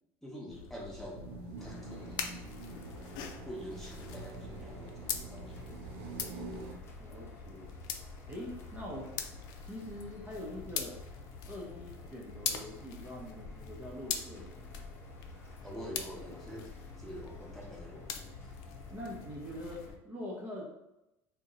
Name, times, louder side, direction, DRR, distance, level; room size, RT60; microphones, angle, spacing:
voice 1, 0.2-1.2 1.6-2.4 3.4-5.7 15.6-16.7 17.0-18.3, equal, 5° left, -4 dB, 1.0 m, -46 dB
sound 1, 0.5-20.0, left 7 dB, 60° left, 0.4 m, -43 dB
sound 2, 1.1-6.7, right 3 dB, 75° right, 0.6 m, -46 dB
sound 3, 1.6-19.9, left 2 dB, 30° left, 1.0 m, -54 dB
voice 2, 7.0-7.8 8.3-9.1 9.6-11.0 11.5-14.8 18.9-20.6, left 1 dB, 20° right, -4 dB, 0.8 m, -44 dB
2.7 x 2.2 x 3.9 m, 0.91 s
supercardioid pair, 95°, 8 cm